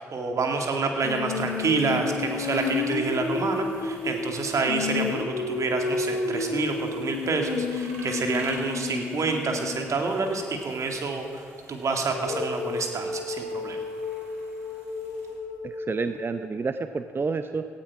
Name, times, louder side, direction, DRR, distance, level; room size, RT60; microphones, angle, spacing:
voice 1, 0.0-13.8, right 4 dB, 50° right, 3 dB, 2.3 m, -28 dB
Female singing, 1.0-9.9 12.1-16.3, left 4 dB, 75° left, 1.2 m, -31 dB
sound 1, 1.5-15.3, right 1 dB, 90° right, 3.2 m, -50 dB
voice 2, 15.6-17.7, right 4 dB, 35° right, 10 dB, 0.7 m, -29 dB
17.5 x 13.0 x 4.8 m, 2.2 s
hypercardioid pair, 45°, 7 cm